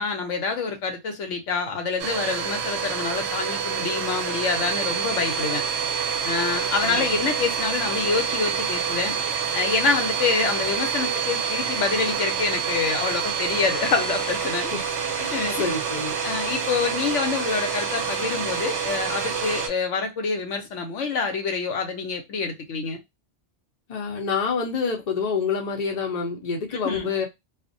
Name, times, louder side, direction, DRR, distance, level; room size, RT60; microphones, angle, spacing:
voice 1, 0.0-5.6 6.2-9.1 9.5-14.7 15.3-15.7 16.2-23.0 26.8-27.1, left 4 dB, 80° left, 1.0 m, -26 dB
Domestic sounds home sounds, 2.0-19.7, right 6 dB, 65° right, 0.8 m, -27 dB
voice 2, 6.8-7.3 14.7-14.8 15.2-16.2 23.9-27.3, left 5 dB, 40° left, 0.6 m, -27 dB
2.5 x 2.1 x 2.5 m
omnidirectional pair, 1.3 m